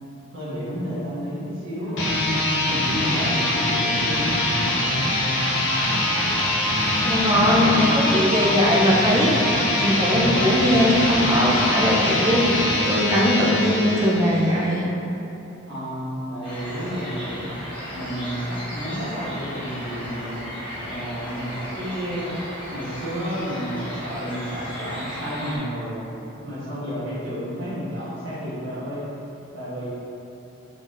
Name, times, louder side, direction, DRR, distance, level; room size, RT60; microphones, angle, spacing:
voice 1, 0.3-2.1 2.6-4.4 15.7-17.5 17.9-20.4 20.8-22.4 22.7-26.0 26.4-29.1 29.5-29.9, equal, 65° right, -10 dB, 1.3 m, -31 dB
sound 1, 1.9-14.6, left 1 dB, 55° left, 0.6 m, -23 dB
voice 2, 7.0-14.8, equal, 15° right, -4 dB, 0.4 m, -20 dB
sound 2, 16.4-25.6, equal, 25° left, 1.0 m, -35 dB
3.8 x 3.8 x 2.5 m, 2.9 s
head